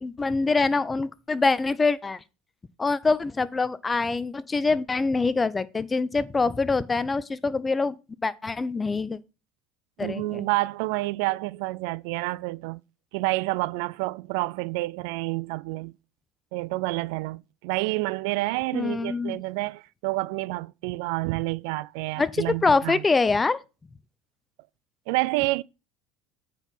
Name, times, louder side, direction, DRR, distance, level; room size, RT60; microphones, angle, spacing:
voice 1, 0.0-2.2 2.8-8.0 8.2-9.2 10.0-10.5 18.7-19.4 22.2-23.6, left 3 dB, 20° left, 0.6 m, -24 dB
voice 2, 10.0-12.8 13.1-15.9 16.5-23.0 25.1-25.6, right 22 dB, 80° right, 0.3 m, -29 dB
8.9 x 4.7 x 5.4 m
supercardioid pair, 110°, 0 cm